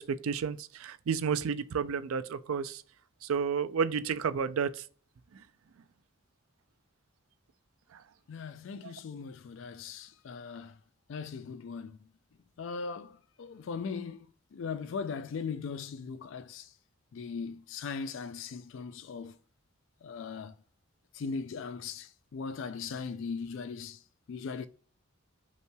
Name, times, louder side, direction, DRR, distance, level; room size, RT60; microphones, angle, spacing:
voice 1, 0.0-2.8 3.3-4.8 8.8-8.9, right 6 dB, 80° right, 0.4 m, -31 dB
voice 2, 8.3-10.7 11.1-12.0 12.6-14.3 14.5-16.7 17.1-19.3 20.0-20.5 21.1-24.0 24.3-24.7, left 5 dB, 60° left, 0.3 m, -39 dB
5.4 x 3.0 x 2.2 m
head